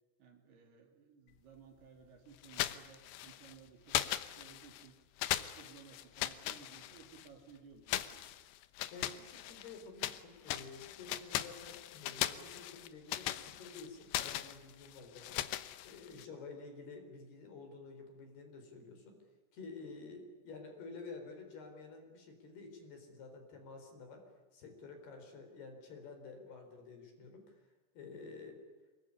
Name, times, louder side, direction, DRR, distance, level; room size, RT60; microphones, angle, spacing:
voice 1, 0.2-5.0 5.4-8.4, right 6 dB, 55° right, 4 dB, 4.1 m, -58 dB
sound 1, 2.4-3.5 3.9-4.9 5.2-7.3 7.9-10.2 10.5-16.3, left 14 dB, 75° left, 2.7 m, -39 dB
voice 2, 8.9-15.4 15.8-19.1 19.5-24.2 24.5-28.6, left 4 dB, 50° left, 5 dB, 5.9 m, -50 dB
25.0 x 22.0 x 9.9 m, 1.3 s
omnidirectional pair, 6.0 m